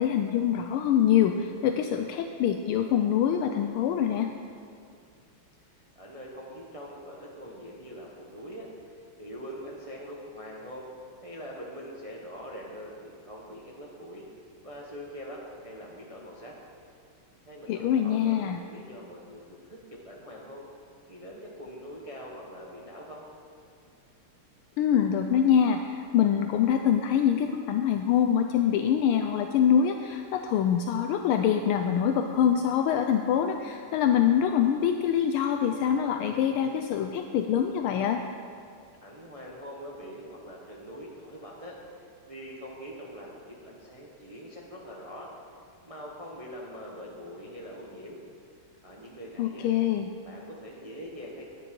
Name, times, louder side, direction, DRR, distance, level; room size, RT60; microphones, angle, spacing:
voice 1, 0.0-4.3 17.7-18.6 24.8-38.2 49.4-50.1, left 9 dB, 80° left, 5 dB, 1.4 m, -24 dB
voice 2, 5.9-8.7 9.2-10.9 11.2-14.3 14.6-16.5 17.5-20.7 21.1-23.2 39.0-41.8 42.3-45.3 45.8-48.2 48.8-49.7 50.2-51.4, equal, 30° right, -3 dB, 0.7 m, -43 dB
10.0 x 9.2 x 5.2 m, 2.3 s
omnidirectional pair, 2.4 m